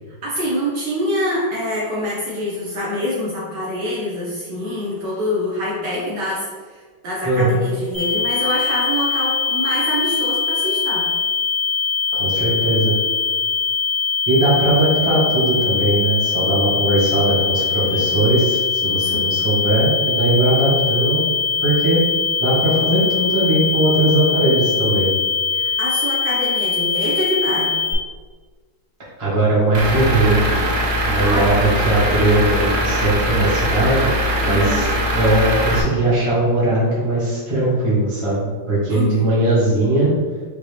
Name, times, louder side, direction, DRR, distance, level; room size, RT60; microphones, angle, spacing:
voice 1, 0.2-11.0 19.0-19.3 25.5-27.8 31.2-31.6 34.5-34.9 38.9-39.3, equal, 65° right, -5 dB, 1.4 m, -25 dB
voice 2, 7.2-7.6 12.2-13.0 14.3-21.2 21.6-22.0 22.4-25.1 29.2-30.6 31.0-34.1 34.4-40.1, right 1 dB, 15° right, -8 dB, 1.2 m, -19 dB
sound 1, 7.9-27.9, left 5 dB, 65° left, 1.8 m, -22 dB
Truck / Idling, 29.7-35.8, equal, 90° right, 0.7 m, -21 dB
5.2 x 2.8 x 3.3 m, 1.5 s
omnidirectional pair, 2.2 m